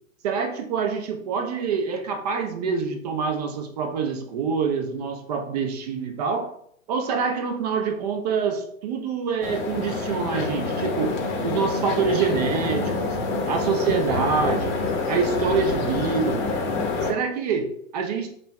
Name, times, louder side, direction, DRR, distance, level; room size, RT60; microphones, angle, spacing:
voice 1, 0.2-6.5 6.9-11.2 11.4-13.2 13.5-14.8 15.1-16.5 17.0-18.3, right 5 dB, 30° right, 6 dB, 0.5 m, -26 dB
sound 1, 9.4-17.1, left 3 dB, 40° left, 0.8 m, -27 dB
5.2 x 2.1 x 3.0 m, 0.65 s
hypercardioid pair, 130°, 40 cm